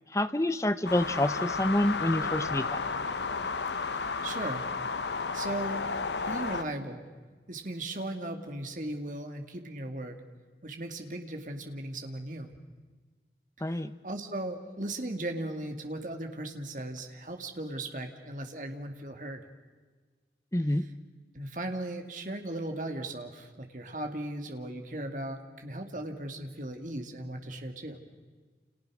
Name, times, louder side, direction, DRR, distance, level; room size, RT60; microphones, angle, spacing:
voice 1, 0.1-2.9 13.6-13.9 20.5-20.8, left 1 dB, 15° left, 12 dB, 0.9 m, -28 dB
sound 1, 0.9-6.6, left 4 dB, 85° left, 1.2 m, -32 dB
voice 2, 3.9-4.7 5.3-5.9 6.3-7.1 7.5-10.2 10.6-12.5 13.7-19.4 21.3-28.0, right 1 dB, 45° right, 4 dB, 2.6 m, -37 dB
29.5 x 29.0 x 6.4 m, 1.4 s
head